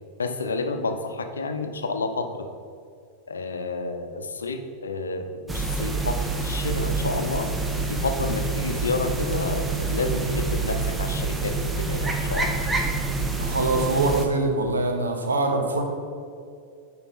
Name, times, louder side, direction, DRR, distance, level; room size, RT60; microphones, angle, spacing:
voice 1, 0.2-2.2 3.3-7.5 7.9-12.6, left 3 dB, 70° left, 6 dB, 0.6 m, -30 dB
sound 1, 5.5-14.2, right 3 dB, 10° right, 0.7 m, -27 dB
voice 2, 13.4-15.8, right 2 dB, 70° right, 4 dB, 0.9 m, -24 dB
8.9 x 4.4 x 4.1 m, 2.4 s
figure-of-eight pair, 90°, 0 cm